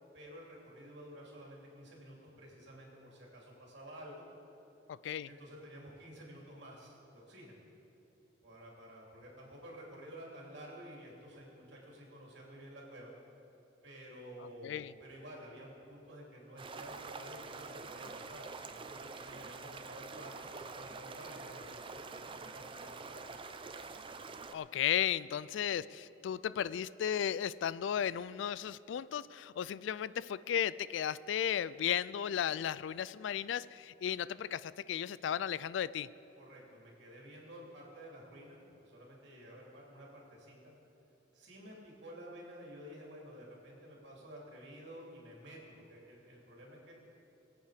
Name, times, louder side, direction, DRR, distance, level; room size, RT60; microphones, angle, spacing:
voice 1, 0.1-4.2 5.2-7.6 8.4-13.1 13.8-23.2 36.3-40.7 41.3-46.9, equal, 60° right, -2 dB, 3.1 m, -51 dB
voice 2, 14.4-14.9 24.5-36.1, left 9 dB, 65° left, 18 dB, 0.3 m, -35 dB
sound 1, 16.6-24.5, right 4 dB, 25° right, 0.5 m, -46 dB
21.5 x 8.3 x 5.1 m, 3.0 s
head